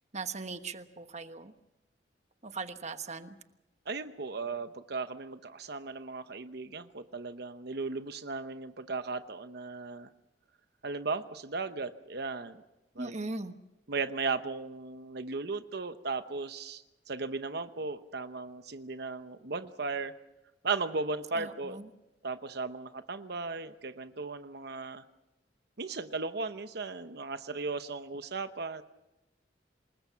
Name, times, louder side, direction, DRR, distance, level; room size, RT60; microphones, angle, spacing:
voice 1, 0.1-1.5 2.4-3.4 13.0-13.5 21.3-21.9, right 3 dB, 40° right, 9 dB, 1.3 m, -39 dB
voice 2, 3.9-10.1 10.8-12.6 13.0-13.2 13.9-20.1 20.6-21.8 22.2-25.0 25.8-28.8, right 4 dB, 60° right, 10 dB, 1.0 m, -36 dB
27.5 x 20.5 x 5.8 m, 0.96 s
head